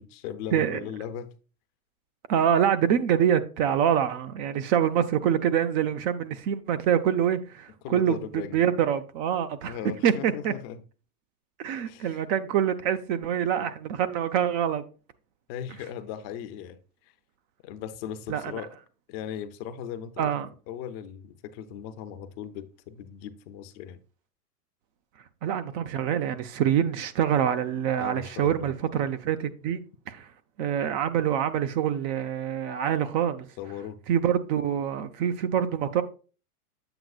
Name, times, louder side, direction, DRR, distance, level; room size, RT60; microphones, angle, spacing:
voice 1, 0.0-1.4 7.8-8.6 9.7-10.8 11.8-12.2 15.5-16.8 17.6-18.7 19.1-20.3 20.7-24.0 28.0-28.7 33.6-34.0, left 9 dB, 40° left, 0.7 m, -38 dB
voice 2, 0.5-0.8 2.3-9.8 10.0-10.5 11.6-14.8 18.3-18.5 20.2-20.5 25.4-29.8 30.1-30.3 30.6-33.5 34.1-36.0, right 9 dB, 35° right, 0.6 m, -25 dB
7.9 x 7.6 x 2.4 m
hypercardioid pair, 120°, 46 cm